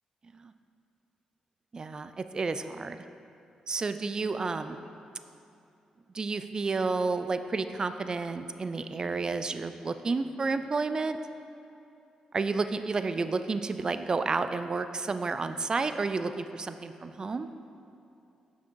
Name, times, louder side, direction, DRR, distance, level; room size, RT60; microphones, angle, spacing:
voice 1, 1.7-3.0 3.7-4.8 6.1-11.2 12.3-17.5, right 4 dB, 35° right, 10 dB, 0.3 m, -31 dB
7.2 x 5.8 x 4.6 m, 2.7 s
cardioid pair, 90°, 2 cm